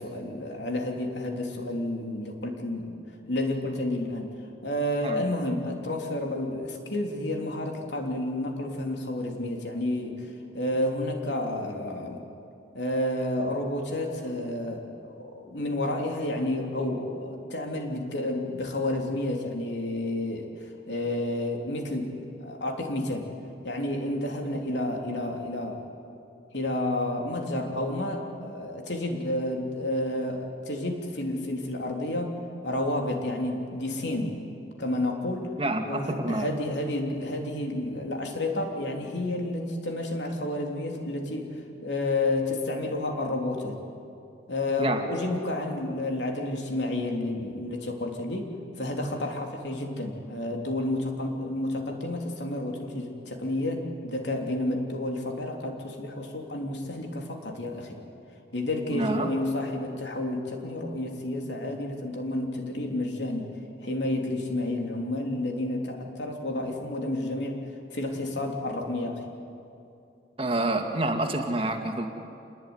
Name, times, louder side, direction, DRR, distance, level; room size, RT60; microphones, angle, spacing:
voice 1, 0.0-3.0 3.3-4.3 4.6-12.2 12.7-23.3 23.6-25.8 26.5-32.4 32.6-34.4 34.8-35.5 35.8-43.8 44.5-58.0 58.5-63.5 63.8-67.6 67.9-69.3, left 1 dB, 70° left, 2 dB, 3.4 m, -30 dB
voice 2, 35.6-36.5 44.8-45.0 58.9-59.3 70.4-72.1, right 2 dB, 30° right, 4 dB, 2.1 m, -28 dB
27.5 x 20.0 x 9.7 m, 2.6 s
head